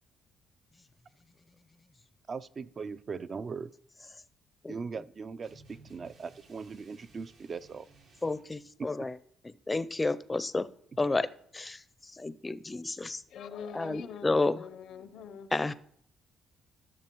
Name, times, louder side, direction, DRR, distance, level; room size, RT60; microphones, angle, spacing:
voice 1, 2.3-3.7 4.7-7.9, right 5 dB, 45° right, 13 dB, 0.3 m, -39 dB
sound 1, 5.4-8.5, right 3 dB, 80° right, 1.8 m, -58 dB
voice 2, 8.2-9.2 9.4-10.7 11.0-11.3 11.5-13.2 13.7-14.6 15.5-15.7, left 3 dB, 20° left, 15 dB, 0.4 m, -31 dB
voice 3, 13.3-15.5, left 7 dB, 75° left, 13 dB, 0.6 m, -44 dB
13.0 x 6.5 x 3.0 m, 0.65 s
cardioid pair, 90°, 0 cm